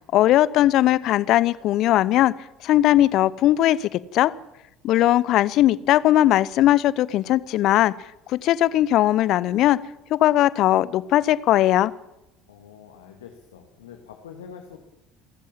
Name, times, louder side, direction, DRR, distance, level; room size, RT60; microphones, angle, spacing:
voice 1, 0.1-2.3 2.6-4.3 4.8-7.9 8.3-9.8 10.1-11.9, left 14 dB, 50° left, 20 dB, 0.8 m, -19 dB
voice 2, 12.5-14.8, left 7 dB, 70° left, 4 dB, 2.2 m, -44 dB
28.5 x 14.0 x 7.5 m, 0.90 s
figure-of-eight pair, 65°, 0 cm